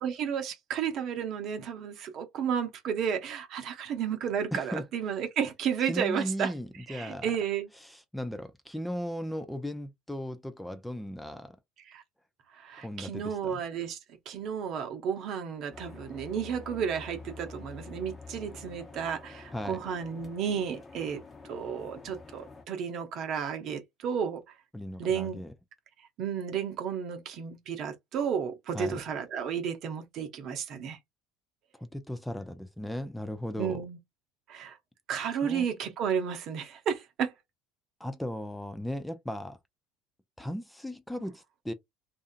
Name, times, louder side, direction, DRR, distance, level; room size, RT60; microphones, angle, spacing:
voice 1, 0.0-6.5 6.9-7.7 11.9-12.0 12.6-14.0 14.3-21.2 21.5-24.4 25.0-25.4 26.2-31.0 33.6-34.0 34.5-34.8 35.1-37.3, right 7 dB, 50° right, 0.8 m, -32 dB
voice 2, 4.5-4.8 5.8-7.4 7.8-11.6 12.8-13.6 19.5-19.8 24.7-25.5 28.7-29.0 31.7-33.8 35.4-35.6 38.0-39.6 40.4-41.7, equal, 5° left, 0.5 m, -37 dB
sound 1, 15.7-22.6, left 4 dB, 30° left, 1.0 m, -47 dB
2.7 x 2.4 x 2.4 m
hypercardioid pair, 65°, 0 cm